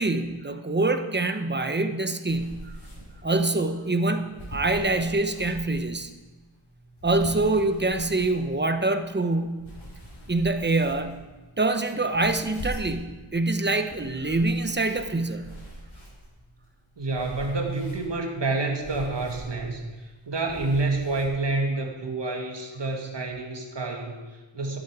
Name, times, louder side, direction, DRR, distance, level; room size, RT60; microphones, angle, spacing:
voice 1, 0.0-2.7 3.2-6.1 7.0-9.7 10.3-11.2 11.6-15.5, right 2 dB, 20° right, 7 dB, 0.9 m, -25 dB
sound 1, 2.3-21.3, equal, 75° left, 4.9 m, -44 dB
voice 2, 17.0-24.8, right 3 dB, 60° right, 2 dB, 2.3 m, -28 dB
12.5 x 12.0 x 4.9 m, 1.2 s
wide cardioid pair, 90°, 48 cm